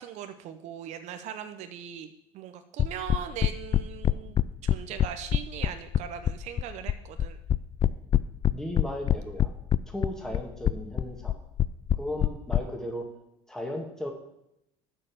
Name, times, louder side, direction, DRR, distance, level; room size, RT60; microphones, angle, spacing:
voice 1, 0.0-7.4, right 9 dB, 65° right, 8 dB, 0.8 m, -40 dB
sound 1, 2.8-12.6, left 10 dB, 35° left, 0.4 m, -24 dB
voice 2, 8.5-9.5 9.9-11.3 12.0-13.1 13.5-14.1, left 1 dB, 5° left, 2 dB, 1.9 m, -36 dB
6.6 x 6.6 x 7.7 m, 0.80 s
supercardioid pair, 85°, 13 cm